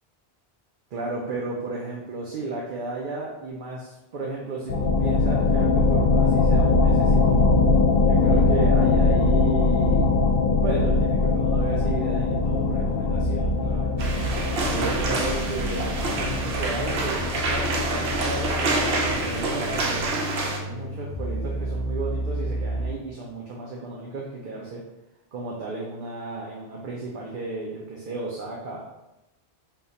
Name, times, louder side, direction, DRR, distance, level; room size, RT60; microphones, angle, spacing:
voice 1, 0.9-7.3 8.0-10.1 10.6-14.1 14.6-20.2 20.5-24.8 25.3-28.8, right 3 dB, 60° right, -3 dB, 0.7 m, -33 dB
sound 1, 4.7-20.1, left 3 dB, 65° left, 0.7 m, -22 dB
sound 2, 12.3-22.9, equal, 20° right, 1.4 m, -32 dB
sound 3, 14.0-20.6, right 2 dB, 90° right, 0.9 m, -27 dB
3.5 x 2.3 x 3.9 m, 0.94 s
omnidirectional pair, 1.0 m